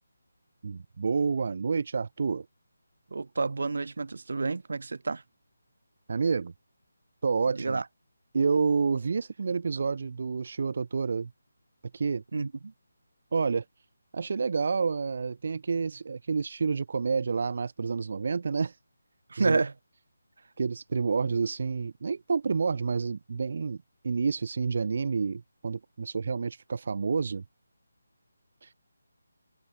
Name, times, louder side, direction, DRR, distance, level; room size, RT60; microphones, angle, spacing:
voice 1, 0.6-2.5 6.1-6.5 7.2-7.8 8.3-11.3 11.9-12.2 13.3-13.6 14.1-18.8 19.4-19.6 20.6-23.8 24.0-27.4 28.6-28.7, right 5 dB, 40° right, 3.5 m, -29 dB
voice 2, 3.1-5.2 7.5-7.8 12.3-12.7 19.3-19.7, right 3 dB, 60° right, 4.6 m, -29 dB
figure-of-eight pair, 175°, 0 cm